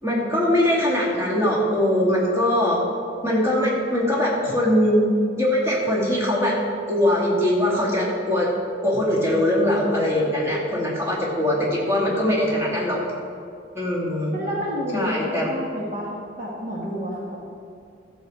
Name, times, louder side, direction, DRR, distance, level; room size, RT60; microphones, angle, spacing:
voice 1, 0.0-2.8 3.2-5.1 5.4-6.6 6.9-8.5 8.8-13.0 13.7-14.3 14.9-15.5, left 1 dB, 15° right, -5 dB, 2.5 m, -21 dB
voice 2, 14.3-17.4, equal, 45° right, -4 dB, 1.5 m, -30 dB
13.5 x 7.1 x 5.0 m, 2.4 s
head